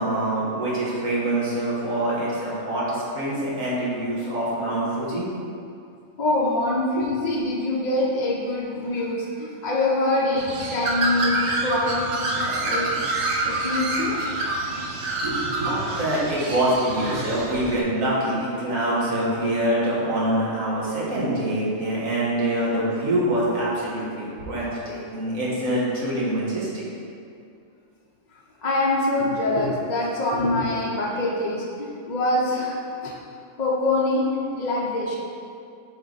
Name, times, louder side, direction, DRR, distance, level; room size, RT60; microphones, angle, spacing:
voice 1, 0.0-5.3 7.0-7.1 15.2-26.8 29.6-29.7 30.3-30.5, right 1 dB, 85° right, -7 dB, 1.9 m, -25 dB
voice 2, 6.2-13.0 13.4-14.2 28.6-33.1 33.6-34.3 34.5-35.2, left 2 dB, 45° left, -3 dB, 0.6 m, -25 dB
Bird, 10.4-17.8, right 2 dB, 65° right, 1.1 m, -27 dB
8.0 x 3.5 x 4.0 m, 2.4 s
omnidirectional pair, 1.4 m